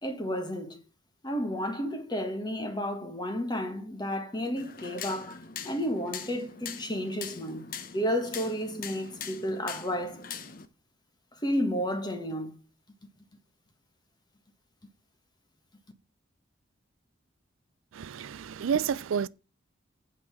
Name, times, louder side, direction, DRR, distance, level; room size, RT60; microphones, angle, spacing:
voice 1, 0.0-0.8 1.2-5.4 5.6-10.2 11.3-12.6, equal, 20° left, 1.4 m, -32 dB
sound 1, 4.6-10.7, left 6 dB, 45° left, 0.8 m, -42 dB
voice 2, 17.9-19.3, right 7 dB, 85° right, 0.4 m, -30 dB
8.7 x 5.4 x 5.9 m
head